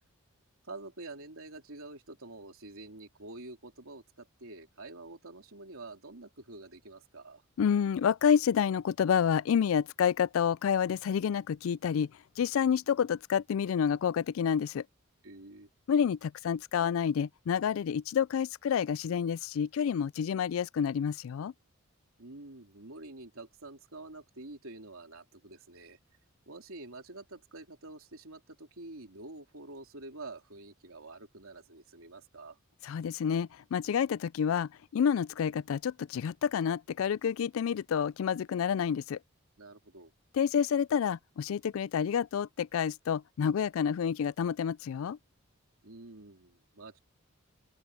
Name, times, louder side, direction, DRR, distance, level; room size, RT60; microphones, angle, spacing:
voice 1, 0.7-7.4 15.2-15.7 22.2-26.0 26.5-32.6 39.6-40.1 45.8-47.0, right 2 dB, 80° right, 3.0 m, -47 dB
voice 2, 7.6-12.1 12.4-14.8 15.9-21.5 32.8-39.2 40.3-45.2, left 7 dB, 75° left, 0.3 m, -29 dB
open air
head